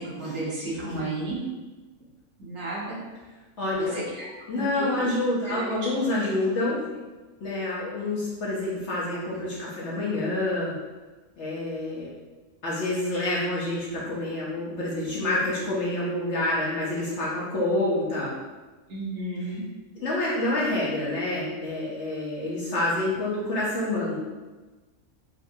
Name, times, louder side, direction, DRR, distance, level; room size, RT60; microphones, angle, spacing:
voice 1, 0.0-1.4 2.4-3.0 3.8-4.3 4.5-5.1 5.4-5.8 18.9-19.6, right 2 dB, 60° right, -7 dB, 1.3 m, -33 dB
voice 2, 3.6-3.9 4.5-6.8 7.4-10.7 11.4-12.1 12.6-18.3 20.0-24.2, left 2 dB, 60° left, -6 dB, 0.9 m, -27 dB
3.9 x 2.6 x 2.6 m, 1.2 s
omnidirectional pair, 1.6 m